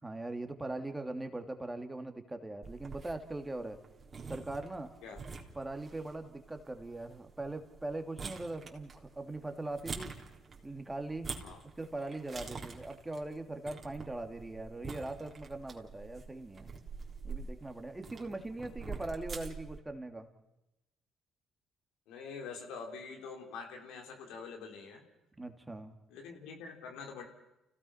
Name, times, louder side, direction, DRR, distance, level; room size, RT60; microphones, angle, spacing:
voice 1, 0.0-3.8 4.3-4.9 5.5-10.1 10.6-11.3 11.8-16.7 17.2-20.3 25.4-26.0, right 2 dB, 15° right, 6 dB, 2.6 m, -41 dB
sound 1, 2.6-19.8, right 4 dB, 40° right, 3.6 m, -47 dB
voice 2, 22.1-25.0 26.1-27.2, left 5 dB, 80° left, 2 dB, 3.8 m, -45 dB
29.5 x 17.0 x 5.8 m, 0.91 s
supercardioid pair, 65°, 0 cm